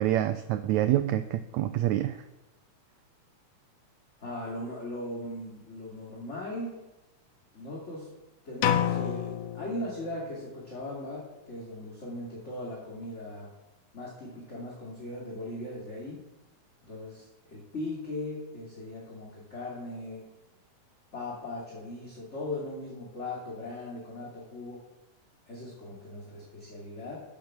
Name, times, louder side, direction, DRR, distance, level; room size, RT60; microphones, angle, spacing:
voice 1, 0.0-2.2, right 13 dB, 80° right, 10 dB, 1.7 m, -27 dB
voice 2, 4.2-6.8 7.5-8.1 8.4-13.5 13.9-16.2 16.8-20.3 21.1-24.8 25.5-27.2, left 1 dB, 25° left, -4 dB, 2.6 m, -38 dB
sound 1, 8.6-10.5, left 10 dB, 80° left, 2.4 m, -29 dB
14.0 x 8.6 x 6.1 m, 0.99 s
omnidirectional pair, 3.8 m